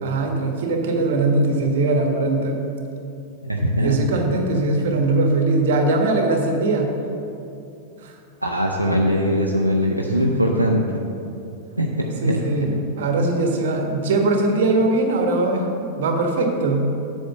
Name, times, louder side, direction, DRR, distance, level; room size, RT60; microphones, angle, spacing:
voice 1, 0.0-2.6 3.8-6.9 8.0-8.1 10.1-10.2 12.2-16.9, right 2 dB, 55° right, 3 dB, 1.2 m, -21 dB
voice 2, 3.4-4.2 8.4-10.8 11.8-12.7, equal, 85° right, -1 dB, 0.6 m, -21 dB
7.9 x 4.5 x 6.7 m, 2.6 s
figure-of-eight pair, 90°, 0 cm